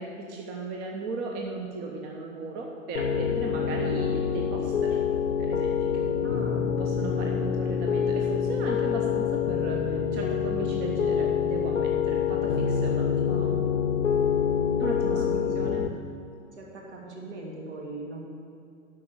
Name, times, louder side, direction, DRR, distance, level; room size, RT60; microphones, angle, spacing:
voice 1, 0.0-5.0 5.4-6.4 6.8-13.6 14.8-15.8, right 3 dB, 25° right, 0 dB, 1.0 m, -36 dB
Piano, 3.0-15.9, left 7 dB, 75° left, 0.9 m, -26 dB
voice 2, 6.2-6.8 15.1-15.6 16.5-18.2, right 2 dB, 60° right, -1 dB, 2.6 m, -40 dB
10.5 x 6.2 x 7.0 m, 2.5 s
figure-of-eight pair, 105°, 38 cm